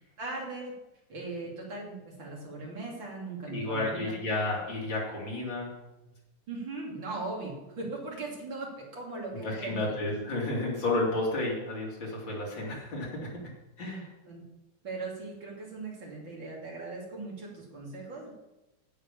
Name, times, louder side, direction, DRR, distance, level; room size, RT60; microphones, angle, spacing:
voice 1, 0.2-0.7 1.1-4.0 6.5-10.0 14.2-14.4 14.8-18.3, right 3 dB, 85° right, -3 dB, 4.0 m, -39 dB
voice 2, 3.5-5.7 9.3-13.3 13.8-14.1, left 2 dB, 90° left, -3 dB, 4.0 m, -31 dB
15.5 x 5.5 x 7.1 m, 0.97 s
omnidirectional pair, 2.0 m